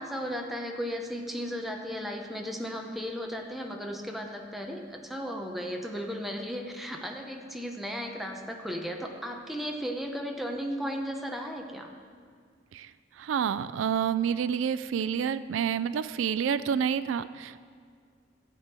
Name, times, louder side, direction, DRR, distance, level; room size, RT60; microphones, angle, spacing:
voice 1, 0.0-11.9, equal, ahead, 1 dB, 0.9 m, -35 dB
voice 2, 13.2-17.7, right 7 dB, 80° right, 15 dB, 0.3 m, -28 dB
15.5 x 8.2 x 4.4 m, 2.1 s
head